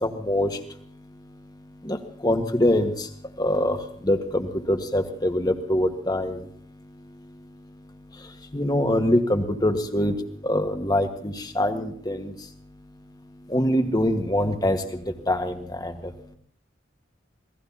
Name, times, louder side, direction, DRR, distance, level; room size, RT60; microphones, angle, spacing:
voice 1, 0.0-0.5 1.8-2.0 2.2-2.9 3.4-3.8 4.1-6.4 8.5-10.1 10.4-12.3 13.5-14.8 15.3-15.5 15.8-15.9, left 1 dB, 20° left, 6 dB, 1.5 m, -23 dB
27.0 x 18.5 x 2.8 m, 0.63 s
head